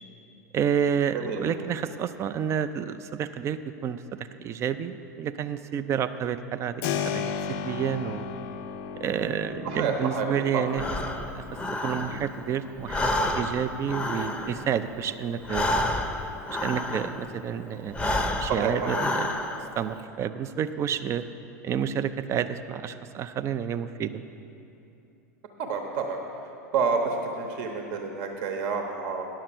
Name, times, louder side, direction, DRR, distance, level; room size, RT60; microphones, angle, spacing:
voice 1, 0.5-8.3 9.0-10.8 11.3-11.4 11.8-15.7 16.5-19.3 19.8-21.3 21.6-24.2, right 8 dB, 30° right, 12 dB, 0.4 m, -30 dB
voice 2, 1.1-1.7 9.6-10.7 18.5-19.0 25.6-26.2 26.7-29.3, right 5 dB, 55° right, 3 dB, 1.0 m, -29 dB
Keyboard (musical), 6.8-17.5, left 7 dB, 55° left, 0.5 m, -38 dB
Breathing, 10.7-12.5 12.8-17.4 17.9-19.8, left 1 dB, 10° left, 0.7 m, -29 dB
10.0 x 6.5 x 6.0 m, 2.9 s
hypercardioid pair, 90°, 9 cm